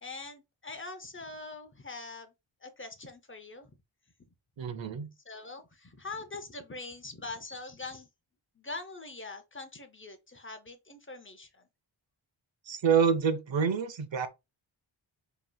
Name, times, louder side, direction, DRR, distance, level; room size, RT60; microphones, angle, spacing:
voice 1, 0.0-2.3 2.6-3.7 5.3-8.1 8.6-11.6, left 3 dB, 25° left, 0.6 m, -43 dB
voice 2, 4.6-5.1 12.7-14.3, right 6 dB, 65° right, 0.8 m, -27 dB
5.2 x 2.9 x 2.2 m
wide cardioid pair, 125°, 49 cm